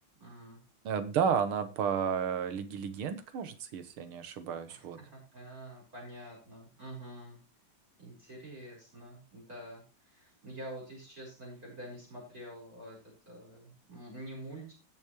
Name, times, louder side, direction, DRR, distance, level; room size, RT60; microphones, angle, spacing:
voice 1, 0.2-0.6 4.7-7.4 8.0-13.0 13.3-14.7, right 1 dB, 40° right, -4 dB, 5.2 m, -47 dB
voice 2, 0.8-5.0, right 7 dB, 80° right, 11 dB, 2.0 m, -32 dB
19.0 x 7.2 x 3.1 m, 0.33 s
omnidirectional pair, 2.4 m